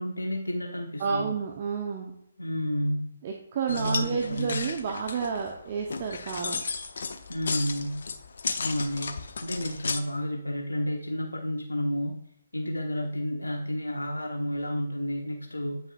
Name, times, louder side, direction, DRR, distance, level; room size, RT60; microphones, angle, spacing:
voice 1, 0.0-1.3 2.4-3.2 3.7-4.7 7.3-8.0 8.6-15.8, equal, 80° left, 1 dB, 1.1 m, -31 dB
voice 2, 1.0-2.1 3.2-6.6, right 6 dB, 35° right, 1 dB, 0.9 m, -30 dB
sound 1, 3.7-10.0, left 4 dB, 55° left, 0.7 m, -34 dB
8.8 x 6.4 x 2.5 m, 0.72 s
figure-of-eight pair, 140°, 0 cm